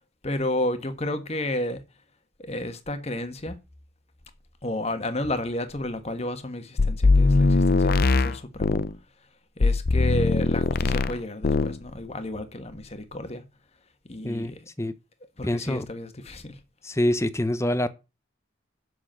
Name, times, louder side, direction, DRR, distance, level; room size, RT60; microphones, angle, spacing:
voice 1, 0.2-1.8 2.4-3.6 4.6-8.8 9.6-13.4 14.1-14.7 15.4-16.6, left 1 dB, 35° left, 1.4 m, -32 dB
sound 1, 6.8-8.9 9.6-11.2 11.4-11.8, left 3 dB, 50° left, 0.6 m, -21 dB
voice 2, 14.2-14.9 15.4-15.9 16.8-17.9, left 1 dB, 15° left, 0.7 m, -26 dB
7.8 x 6.2 x 7.5 m
head